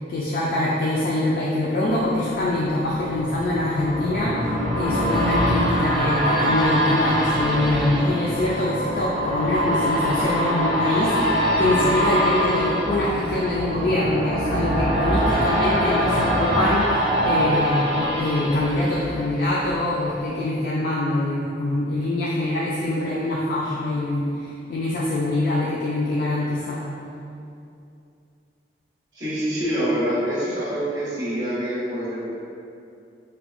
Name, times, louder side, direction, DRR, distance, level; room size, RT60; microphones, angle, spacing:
voice 1, 0.1-26.8, left 1 dB, 55° left, -5 dB, 0.3 m, -24 dB
sound 1, 2.1-19.7 20.2-20.3, equal, ahead, 0.7 m, -23 dB
voice 2, 29.1-32.2, equal, 25° right, -12 dB, 1.0 m, -25 dB
4.2 x 2.2 x 2.3 m, 2.6 s
head